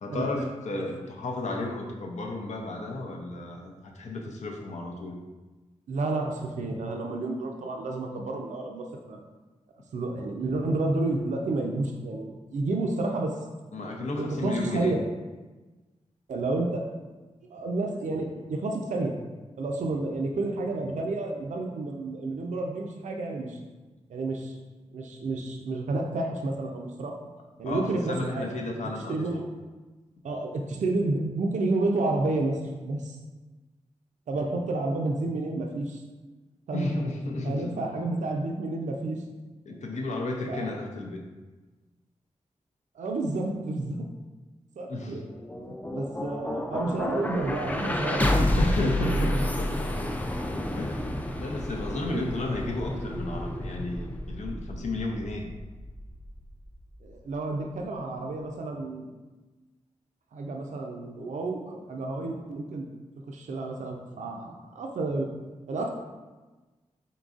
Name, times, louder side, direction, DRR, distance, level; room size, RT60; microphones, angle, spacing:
voice 1, 0.0-5.2 13.7-15.0 27.6-29.4 36.7-37.8 39.7-41.2 44.9-45.2 48.6-49.8 50.8-55.5, left 2 dB, 70° left, 1 dB, 0.6 m, -33 dB
voice 2, 5.9-9.2 9.9-13.3 14.0-15.0 16.3-16.8 17.5-19.1 19.6-23.6 24.1-24.6 24.9-27.1 27.6-28.8 29.1-29.4 30.2-33.2 34.3-36.0 36.7-36.9 37.4-39.2 40.5-40.7 42.9-44.1 44.8-45.2 45.6-48.4 52.0-52.3 57.0-59.1 60.3-62.9 63.3-65.3 65.7-65.9, right 2 dB, 80° right, 1 dB, 0.4 m, -30 dB
sound 1, 45.2-57.3, left 1 dB, 10° left, 0.4 m, -30 dB
4.0 x 3.8 x 2.4 m, 1.2 s
cardioid pair, 65°, 12 cm